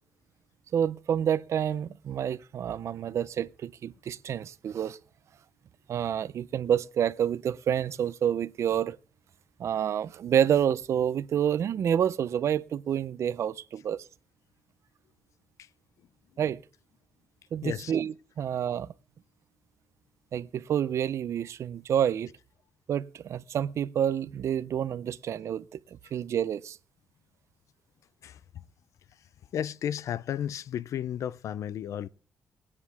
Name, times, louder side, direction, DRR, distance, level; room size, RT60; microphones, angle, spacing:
voice 1, 0.7-5.0 5.9-9.0 9.6-14.1 16.4-16.6 17.5-18.9 20.3-22.3 22.9-26.8, right 9 dB, 65° right, 0.5 m, -28 dB
voice 2, 29.5-32.1, left 10 dB, 80° left, 0.5 m, -33 dB
21.5 x 9.8 x 3.5 m
wide cardioid pair, 155°, 5 cm